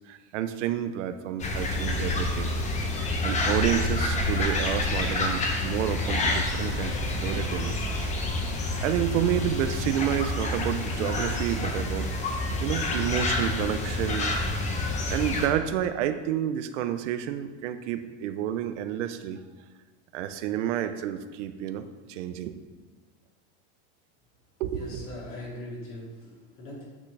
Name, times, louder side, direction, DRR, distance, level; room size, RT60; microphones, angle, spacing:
voice 1, 0.1-2.5 3.2-7.8 8.8-12.1 12.6-14.3 14.8-19.4 20.1-22.6 24.6-25.0, right 10 dB, 80° right, 10 dB, 0.7 m, -30 dB
sound 1, 1.4-15.5, left 2 dB, 20° left, 0.8 m, -28 dB
voice 2, 24.7-26.8, left 1 dB, 40° left, -4 dB, 2.5 m, -40 dB
8.4 x 6.0 x 3.3 m, 1.3 s
supercardioid pair, 150°, 35 cm